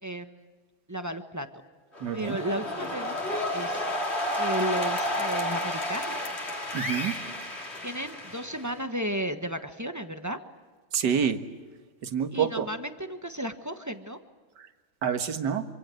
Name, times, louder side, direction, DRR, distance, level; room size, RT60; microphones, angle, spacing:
voice 1, 0.0-0.4 0.9-1.5 2.1-3.8 4.4-6.2 7.8-10.4 12.3-14.2, right 1 dB, 10° right, 7 dB, 0.9 m, -34 dB
sound 1, 1.9-8.8, left 1 dB, 30° left, 3.3 m, -31 dB
voice 2, 2.0-2.4 6.7-7.1 10.9-11.4 12.0-12.7 15.0-15.7, right 7 dB, 55° right, 8 dB, 2.0 m, -27 dB
26.5 x 25.5 x 7.8 m, 1.4 s
omnidirectional pair, 2.4 m